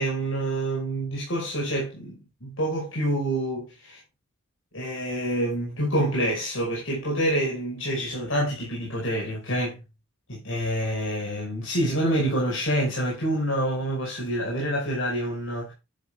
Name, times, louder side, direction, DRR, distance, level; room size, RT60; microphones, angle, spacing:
voice 1, 0.0-4.0 4.7-9.8 10.3-15.7, right 1 dB, 90° left, 5.4 m, -27 dB
11.0 x 9.9 x 2.3 m
head